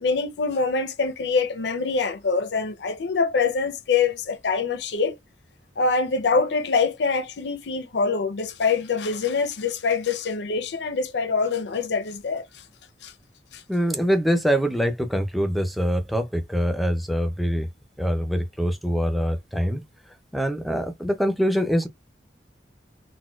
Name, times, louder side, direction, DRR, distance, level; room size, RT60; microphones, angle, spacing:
voice 1, 0.0-5.2 5.8-12.6 13.0-13.1 13.5-13.6, left 4 dB, 75° left, 0.5 m, -24 dB
voice 2, 13.7-17.7 18.0-19.8 20.3-21.9, equal, ahead, 0.4 m, -24 dB
4.1 x 2.2 x 2.3 m
head